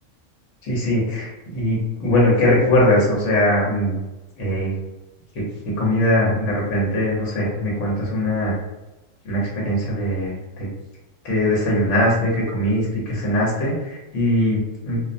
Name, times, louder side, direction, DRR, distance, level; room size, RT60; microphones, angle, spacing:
voice 1, 0.6-4.0 4.4-4.7 5.3-5.4 5.8-8.6 9.2-10.7 11.2-15.0, left 1 dB, 70° left, -4 dB, 1.2 m, -21 dB
2.6 x 2.0 x 2.5 m, 1.0 s
omnidirectional pair, 1.3 m